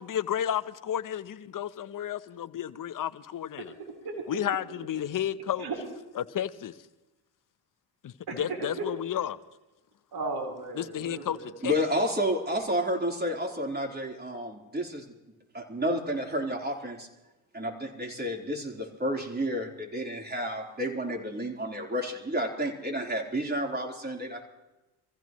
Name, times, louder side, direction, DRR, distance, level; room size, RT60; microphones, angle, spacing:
voice 1, 0.0-3.7 4.3-5.7 6.2-6.8 8.0-9.4 10.8-11.7, left 10 dB, 45° left, 0.9 m, -32 dB
voice 2, 3.6-4.4 4.9-5.0 5.6-5.8 8.3-8.9 10.1-11.5, right 3 dB, 55° right, 4.1 m, -36 dB
voice 3, 11.6-15.1 15.5-17.1 17.5-24.4, equal, 20° right, 3.8 m, -30 dB
25.0 x 15.5 x 3.1 m
supercardioid pair, 70°, 43 cm